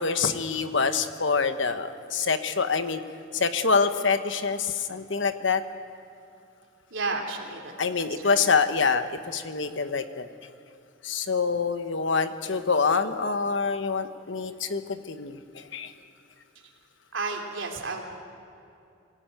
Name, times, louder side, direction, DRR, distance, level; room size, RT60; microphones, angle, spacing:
voice 1, 0.0-3.0 3.3-5.6 7.8-10.3 11.0-15.9, left 5 dB, 70° left, 9 dB, 1.2 m, -26 dB
voice 2, 6.9-7.7 8.1-8.4 17.1-18.0, right 3 dB, 85° right, 1 dB, 2.9 m, -32 dB
23.0 x 17.0 x 9.2 m, 2.6 s
head